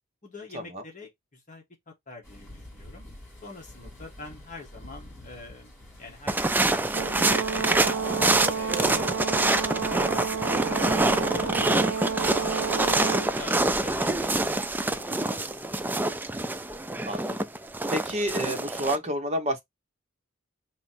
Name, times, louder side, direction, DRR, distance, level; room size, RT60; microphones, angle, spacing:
voice 1, 0.2-3.1 3.4-8.1 8.5-10.4 10.9-16.2, left 3 dB, 40° left, 1.6 m, -46 dB
sound 1, 2.2-15.0, left 1 dB, 10° left, 2.2 m, -48 dB
sound 2, 6.3-19.0, right 2 dB, 10° right, 0.3 m, -26 dB
Brass instrument, 6.9-13.3, right 6 dB, 75° right, 0.5 m, -31 dB
voice 2, 17.1-17.5 17.9-19.6, equal, 30° right, 1.2 m, -29 dB
4.1 x 2.9 x 4.3 m
head